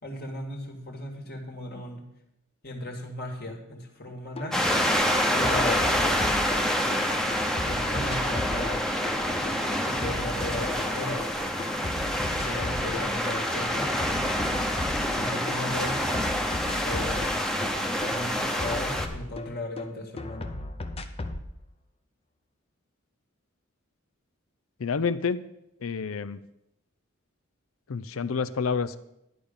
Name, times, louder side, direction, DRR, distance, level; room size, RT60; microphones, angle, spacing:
voice 1, 0.0-2.0 2.6-4.6 5.3-6.3 7.6-8.9 9.8-11.4 12.3-13.9 15.2-16.0 16.8-17.4 18.0-20.6, left 1 dB, 50° left, 1 dB, 2.0 m, -36 dB
sound 1, 4.4-4.5 4.8-7.0 7.3-11.3 11.6-13.1 13.3-15.6 15.9-19.9 20.2-21.5, left 2 dB, 30° left, 0.7 m, -36 dB
sound 2, 4.5-19.1, equal, 5° left, 0.9 m, -27 dB
voice 2, 24.8-25.4 25.8-26.4 27.9-29.0, left 5 dB, 85° left, 15 dB, 0.5 m, -28 dB
11.0 x 5.1 x 7.1 m, 0.83 s
head